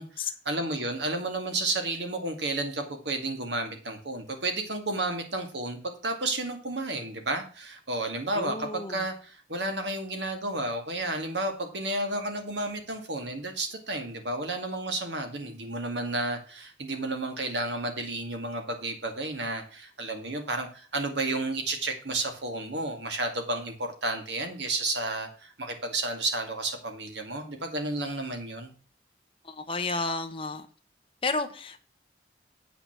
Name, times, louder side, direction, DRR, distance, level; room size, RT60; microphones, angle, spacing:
voice 1, 0.5-28.7, right 2 dB, 75° right, 5 dB, 2.2 m, -32 dB
voice 2, 8.3-9.0 29.4-30.7 31.2-31.9, left 3 dB, 30° left, 6 dB, 1.0 m, -31 dB
8.3 x 6.0 x 6.0 m, 0.40 s
head